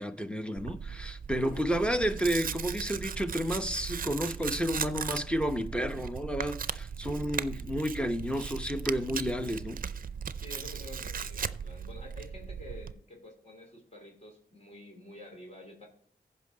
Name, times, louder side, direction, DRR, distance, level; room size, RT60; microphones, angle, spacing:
voice 1, 0.0-9.8, equal, 5° left, 0.9 m, -31 dB
Tearing, 0.6-12.9, right 7 dB, 60° right, 0.5 m, -37 dB
voice 2, 10.4-15.9, left 1 dB, 40° left, 3.0 m, -49 dB
15.5 x 5.4 x 3.8 m
wide cardioid pair, 70°, 16 cm